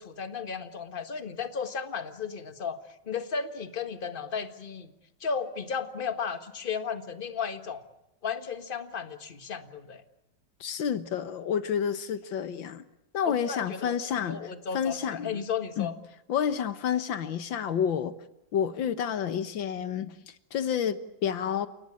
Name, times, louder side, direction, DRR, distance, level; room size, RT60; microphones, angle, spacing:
voice 1, 0.0-2.8 3.0-4.9 5.2-7.9 8.2-10.0 13.2-14.0 14.2-15.9, left 6 dB, 30° left, 9 dB, 1.6 m, -34 dB
voice 2, 10.6-12.8 13.1-14.5 14.7-15.4 15.8-15.9 16.3-18.1 18.5-20.2 20.5-21.7, left 8 dB, 90° left, 12 dB, 2.0 m, -29 dB
30.0 x 18.0 x 8.5 m, 0.88 s
omnidirectional pair, 2.0 m